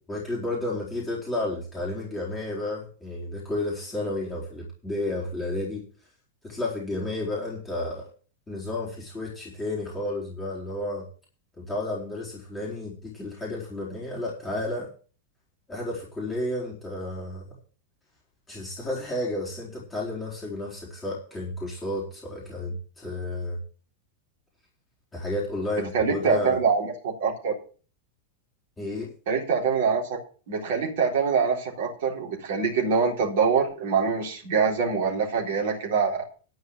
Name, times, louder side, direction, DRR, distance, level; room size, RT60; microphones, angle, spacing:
voice 1, 0.1-5.8 6.4-8.1 8.5-11.1 11.6-14.9 15.7-17.4 18.5-23.6 25.1-26.6 28.8-29.1, left 1 dB, 15° left, -5 dB, 4.5 m, -32 dB
voice 2, 25.9-27.5 29.3-30.2 30.5-36.2, right 5 dB, 55° right, -2 dB, 3.8 m, -24 dB
12.5 x 5.6 x 8.0 m, 0.39 s
figure-of-eight pair, 90°, 0 cm